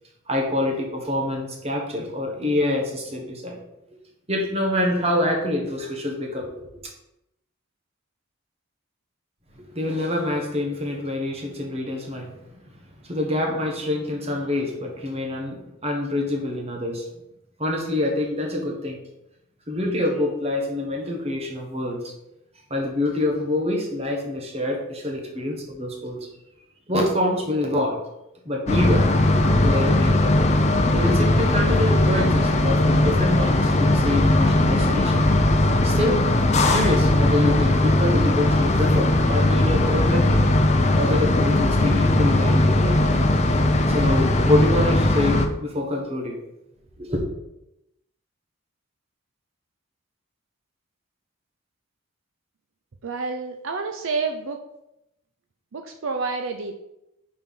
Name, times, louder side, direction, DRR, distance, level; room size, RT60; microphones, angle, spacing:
voice 1, 0.3-3.6 4.3-6.7 9.5-12.3 13.0-17.0 17.6-19.0 19.7-22.0 22.7-26.3 26.9-28.0 28.4-29.1 29.4-30.5 30.9-35.2 35.8-36.2 36.5-40.4 41.0-43.2 43.9-46.4 47.0-47.2, left 1 dB, 30° right, 1 dB, 1.3 m, -26 dB
sound 1, 28.7-45.5, left 1 dB, 30° left, 0.5 m, -19 dB
voice 2, 53.0-54.6 55.7-56.7, right 4 dB, 70° right, 5 dB, 0.5 m, -29 dB
5.4 x 4.5 x 5.7 m, 0.86 s
head